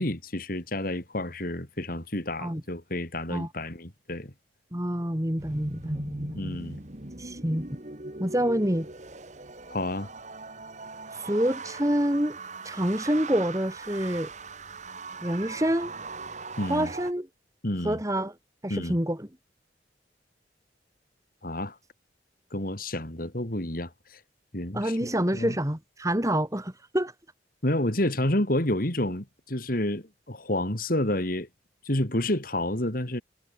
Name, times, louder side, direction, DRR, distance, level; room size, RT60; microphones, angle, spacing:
voice 1, 0.0-4.3 6.4-6.8 9.7-10.1 16.6-16.9 17.6-18.0 18.7-19.0 21.4-21.8 22.5-24.2 24.5-25.6 27.6-31.5 31.9-33.2, left 1 dB, 50° left, 3.5 m, -29 dB
voice 2, 4.7-6.4 7.2-7.7 8.2-8.9 11.1-12.4 12.6-14.3 15.2-15.9 16.7-17.3 17.8-18.3 18.6-19.3 24.7-27.1, right 1 dB, 20° right, 3.5 m, -27 dB
sound 1, 5.4-17.1, right 3 dB, 40° right, 2.4 m, -39 dB
head